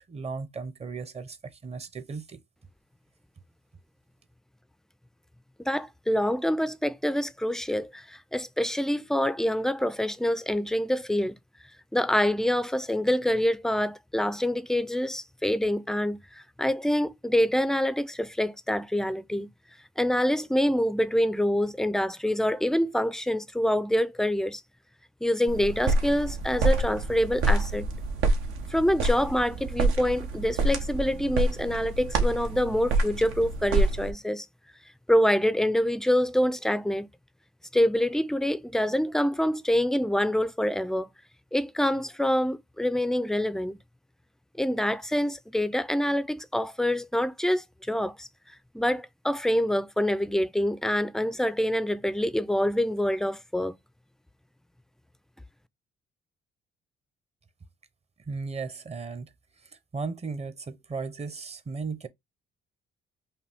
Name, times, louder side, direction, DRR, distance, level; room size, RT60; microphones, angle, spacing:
voice 1, 0.1-2.4 58.3-59.3 59.6-62.1, right 4 dB, 30° right, 0.8 m, -36 dB
voice 2, 5.6-11.4 11.9-19.5 20.0-24.6 25.2-27.9 28.7-34.5 35.1-37.1 37.7-41.1 41.5-43.8 44.6-48.3 48.7-53.8, left 1 dB, ahead, 0.4 m, -26 dB
sound 1, 25.5-34.1, right 2 dB, 90° right, 1.0 m, -27 dB
5.6 x 2.2 x 3.4 m
cardioid pair, 90°, 20 cm